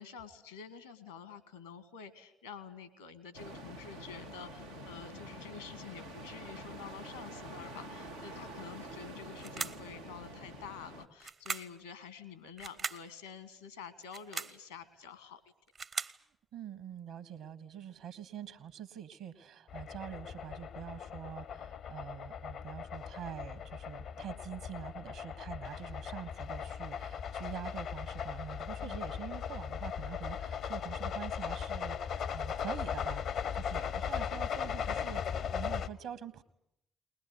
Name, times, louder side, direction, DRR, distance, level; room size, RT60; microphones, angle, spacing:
voice 1, 0.0-15.4 28.8-29.0, left 7 dB, 80° left, 14 dB, 1.7 m, -48 dB
sound 1, 3.3-11.1, right 1 dB, 90° right, 1.5 m, -47 dB
sound 2, 9.4-9.9 11.2-11.8 12.6-13.1 14.0-14.6 15.5-16.2, right 5 dB, 45° right, 0.9 m, -39 dB
voice 2, 16.5-33.2 33.5-36.4, right 9 dB, 65° right, 12 dB, 1.5 m, -45 dB
sound 3, 19.7-35.9, left 7 dB, 60° left, 0.9 m, -38 dB
21.0 x 21.0 x 9.9 m, 0.78 s
figure-of-eight pair, 40°, 0 cm